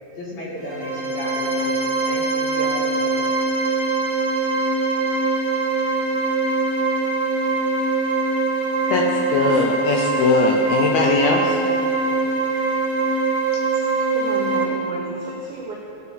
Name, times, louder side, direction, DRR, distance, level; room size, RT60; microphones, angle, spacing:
voice 1, 0.2-3.4, equal, 55° left, -5 dB, 2.3 m, -34 dB
sound 1, 0.6-14.6, right 3 dB, 25° right, 2.7 m, -22 dB
voice 2, 8.9-11.6 13.5-13.6, left 3 dB, 80° left, 0 dB, 2.3 m, -20 dB
voice 3, 14.1-15.8, right 2 dB, 80° right, -3 dB, 1.7 m, -33 dB
16.0 x 5.5 x 5.8 m, 2.8 s
omnidirectional pair, 5.0 m